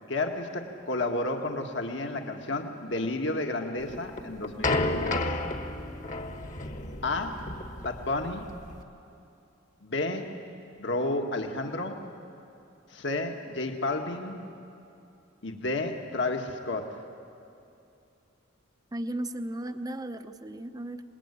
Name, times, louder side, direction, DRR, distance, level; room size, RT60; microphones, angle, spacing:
voice 1, 0.1-5.2 7.0-7.5 7.8-8.4 9.8-10.3 10.8-12.0 12.9-14.5 15.4-17.0, left 2 dB, 65° left, 4 dB, 1.9 m, -31 dB
sound 1, 3.9-8.8, left 2 dB, 40° left, 1.4 m, -32 dB
voice 2, 18.9-21.0, right 1 dB, 20° right, 9 dB, 0.8 m, -35 dB
26.0 x 20.0 x 9.9 m, 2.7 s
head